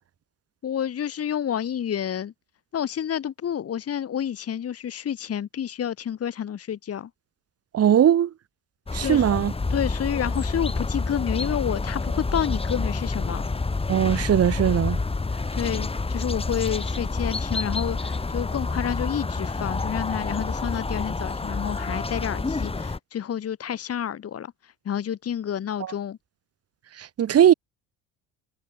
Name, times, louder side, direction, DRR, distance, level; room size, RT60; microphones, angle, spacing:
voice 1, 0.6-2.3 2.7-7.1 9.0-9.3 9.7-13.4 15.5-24.5 24.9-26.2, left 9 dB, 40° left, 2.1 m, -29 dB
voice 2, 7.7-8.3 8.9-9.5 13.9-15.0 25.8-25.9 27.0-27.5, right 10 dB, 40° right, 1.6 m, -19 dB
sound 1, 8.9-23.0, left 3 dB, 15° left, 1.9 m, -28 dB
supercardioid pair, 75°, 37 cm